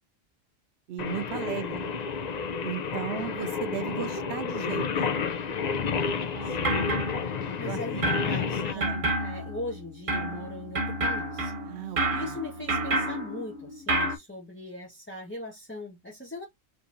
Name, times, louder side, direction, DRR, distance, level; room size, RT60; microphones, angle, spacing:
voice 1, 0.9-1.9 2.6-4.9 7.5-7.8 8.7-9.0 11.6-12.3, right 10 dB, 75° right, 0.8 m, -35 dB
Singing, 1.0-8.7, left 6 dB, 45° left, 0.6 m, -30 dB
voice 2, 1.5-1.9 3.1-3.4 6.4-6.8 7.6-11.5 11.8-16.5, left 1 dB, 10° left, 1.2 m, -40 dB
sound 1, 6.4-7.7 8.0-14.2, right 1 dB, 55° right, 1.2 m, -30 dB
5.2 x 3.2 x 2.6 m
omnidirectional pair, 1.1 m